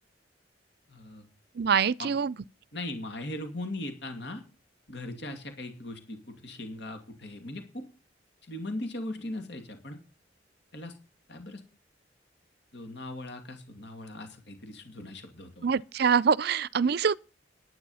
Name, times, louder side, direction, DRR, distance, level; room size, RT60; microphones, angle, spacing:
voice 1, 0.9-1.3 2.0-2.1 2.7-4.4 4.9-7.9 8.4-10.0 10.7-11.0 11.3-11.6 12.7-15.7, left 1 dB, 65° left, 2.5 m, -39 dB
voice 2, 1.6-2.3 15.6-17.2, right 6 dB, 60° right, 0.5 m, -25 dB
11.0 x 9.0 x 5.6 m
head